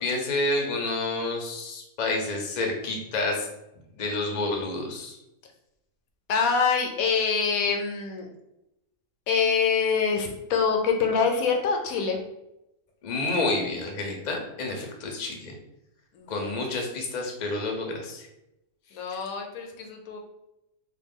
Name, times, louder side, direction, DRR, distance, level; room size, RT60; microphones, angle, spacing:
voice 1, 0.0-3.4 4.0-5.2 13.0-15.5 16.3-18.3 19.1-19.2, left 2 dB, 50° left, 1 dB, 0.5 m, -29 dB
voice 2, 6.3-8.3 9.3-12.2 16.1-16.5 18.9-20.2, left 5 dB, 80° left, 3 dB, 1.0 m, -25 dB
3.5 x 2.2 x 3.6 m, 0.89 s
omnidirectional pair, 1.5 m